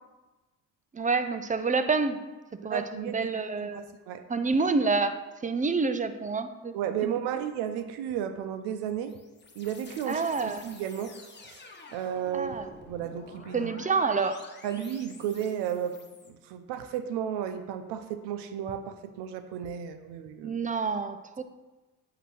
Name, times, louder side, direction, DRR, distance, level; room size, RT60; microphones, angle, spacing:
voice 1, 0.9-2.2 2.6-3.9 4.3-5.2 5.4-6.7 10.1-10.7 12.3-12.7 13.5-14.4 20.4-21.4, right 4 dB, 20° right, 10 dB, 0.5 m, -28 dB
voice 2, 2.7-3.2 3.6-4.2 6.7-9.2 9.6-11.1 11.4-11.6 11.9-13.7 14.6-16.0 16.3-20.6, right 9 dB, 80° right, 9 dB, 0.7 m, -33 dB
sound 1, 8.7-16.3, left 3 dB, 25° left, 1.2 m, -50 dB
8.0 x 3.0 x 6.0 m, 1.1 s
supercardioid pair, 65°, 40 cm